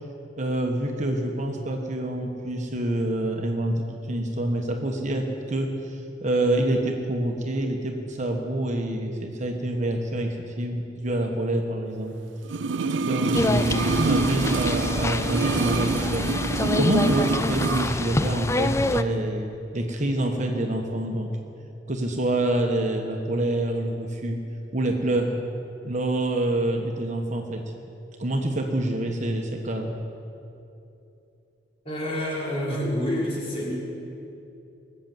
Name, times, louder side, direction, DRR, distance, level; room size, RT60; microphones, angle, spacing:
voice 1, 0.4-12.1 13.0-21.3 21.9-24.4 24.7-25.4 25.8-27.6 28.2-29.9, right 1 dB, 40° right, 3 dB, 1.2 m, -27 dB
sound 1, 12.5-18.0 18.2-18.3, right 4 dB, 80° right, 0.5 m, -26 dB
sound 2, 13.3-19.0, left 2 dB, 15° left, 0.4 m, -27 dB
voice 2, 31.8-33.8, equal, 35° left, -5 dB, 3.9 m, -28 dB
20.5 x 6.8 x 7.6 m, 2.8 s
head